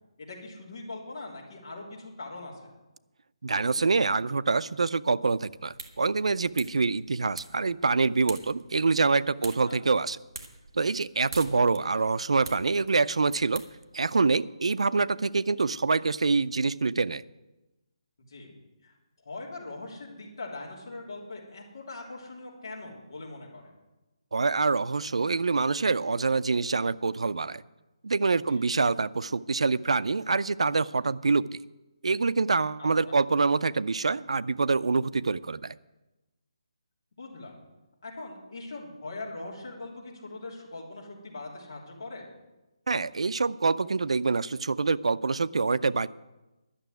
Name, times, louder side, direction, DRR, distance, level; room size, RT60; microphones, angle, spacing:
voice 1, 0.2-2.7 9.4-9.8 18.2-18.5 18.8-18.9 19.2-23.7 28.5-28.6 32.8-33.2 37.2-37.6 38.0-42.3, left 2 dB, 40° left, -2 dB, 3.2 m, -41 dB
voice 2, 3.4-10.2 10.7-13.6 13.9-17.2 24.3-27.6 28.0-31.6 32.0-35.8 42.9-46.1, right 4 dB, 90° right, 17 dB, 0.4 m, -26 dB
sound 1, 5.5-14.3, right 3 dB, 35° right, 1.3 m, -47 dB
11.5 x 6.8 x 9.2 m, 1.0 s
hypercardioid pair, 175°, 3 cm